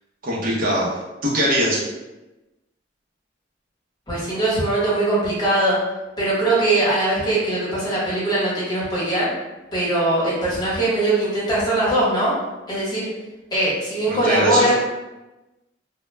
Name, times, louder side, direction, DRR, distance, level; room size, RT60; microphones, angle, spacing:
voice 1, 0.2-1.8 14.1-14.7, equal, 50° right, -6 dB, 0.6 m, -21 dB
voice 2, 4.1-5.7 6.2-9.3 9.7-12.3 12.7-13.1 13.5-14.7, right 1 dB, 20° left, -8 dB, 1.0 m, -21 dB
2.1 x 2.1 x 3.1 m, 1.0 s
head